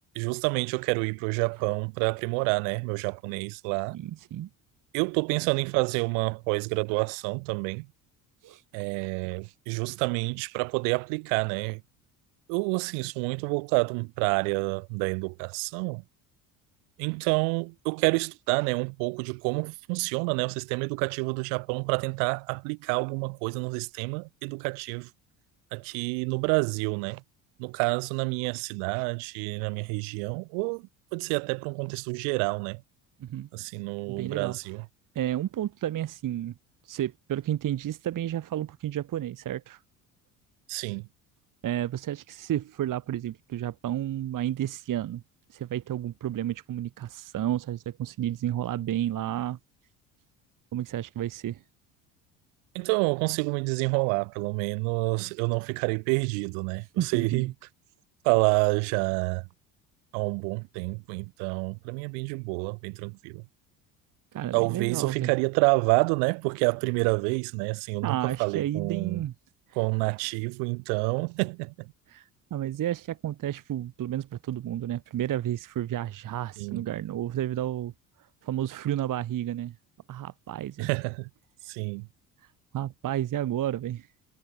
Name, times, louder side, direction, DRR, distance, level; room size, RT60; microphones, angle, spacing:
voice 1, 0.2-4.0 4.9-7.9 8.7-11.8 12.5-16.0 17.0-25.1 25.7-27.2 27.6-32.8 33.5-34.9 40.7-41.1 52.7-57.5 58.2-59.5 60.1-63.4 64.5-69.2 69.8-71.9 76.6-76.8 80.8-81.3 81.6-82.1, right 40 dB or more, 70° right, 1.9 m, -28 dB
voice 2, 3.9-4.5 8.4-8.6 33.2-33.5 34.1-34.6 35.1-36.5 36.8-39.8 41.6-45.2 45.5-49.6 50.7-51.6 57.0-57.5 64.3-65.3 68.0-69.3 72.1-72.2 72.5-77.9 78.4-79.7 80.1-80.9 82.7-84.1, right 12 dB, 45° right, 1.3 m, -31 dB
hypercardioid pair, 60°, 45 cm